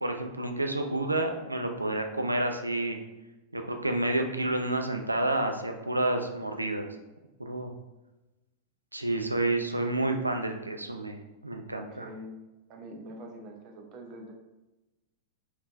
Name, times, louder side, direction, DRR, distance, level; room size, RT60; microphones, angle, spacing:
voice 1, 0.0-3.0 3.5-6.9 7.4-7.7 8.9-12.1, right 2 dB, 90° right, 5 dB, 0.3 m, -29 dB
voice 2, 11.7-12.3 12.7-14.3, right 1 dB, 40° right, 2 dB, 0.6 m, -44 dB
3.5 x 2.4 x 2.5 m, 1.0 s
figure-of-eight pair, 95°, 0 cm